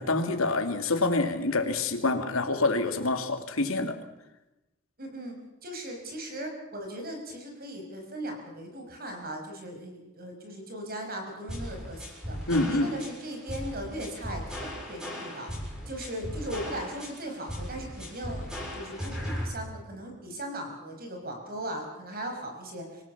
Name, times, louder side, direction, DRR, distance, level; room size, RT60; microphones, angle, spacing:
voice 1, 0.0-4.0 12.5-12.9, left 2 dB, 80° left, 6 dB, 2.6 m, -26 dB
voice 2, 5.0-5.4 5.6-15.5 15.9-23.0, right 1 dB, 45° right, 4 dB, 5.8 m, -38 dB
sound 1, 11.5-19.5, equal, 5° right, 6.8 m, -37 dB
26.5 x 17.5 x 7.3 m, 0.97 s
head